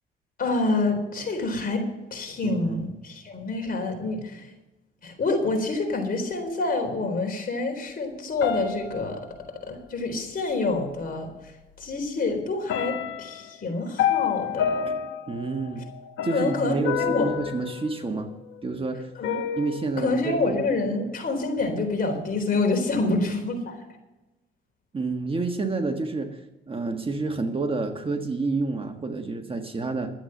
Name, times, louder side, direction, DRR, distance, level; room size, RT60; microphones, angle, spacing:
voice 1, 0.4-1.8 2.1-4.5 5.0-9.2 9.7-11.5 11.8-14.9 16.3-17.3 19.2-19.5 20.0-23.9, left 3 dB, 45° left, 3 dB, 4.0 m, -27 dB
voice 2, 2.4-2.9 15.3-15.9 16.2-18.3 18.6-19.1 19.6-20.6 24.9-26.4 26.7-30.1, right 3 dB, 25° right, 5 dB, 1.4 m, -29 dB
sound 1, 8.4-9.9 11.0-11.1 11.6-12.2 12.7-18.6 19.2-20.0, left 9 dB, 80° left, 1.1 m, -30 dB
12.5 x 8.2 x 7.6 m, 1.0 s
cardioid pair, 90°, 20 cm